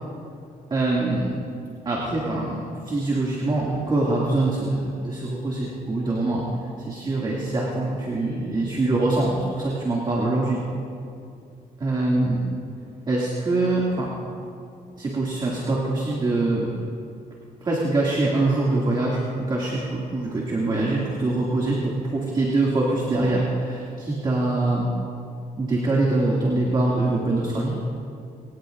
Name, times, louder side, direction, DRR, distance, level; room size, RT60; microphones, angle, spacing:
voice 1, 0.7-1.3 1.9-6.4 6.8-10.6 11.8-12.4 13.1-14.1 15.0-16.7 17.6-24.9 25.6-27.8, right 2 dB, 30° right, -4 dB, 2.3 m, -24 dB
24.0 x 17.5 x 2.6 m, 2.5 s
cardioid pair, 140°, 16 cm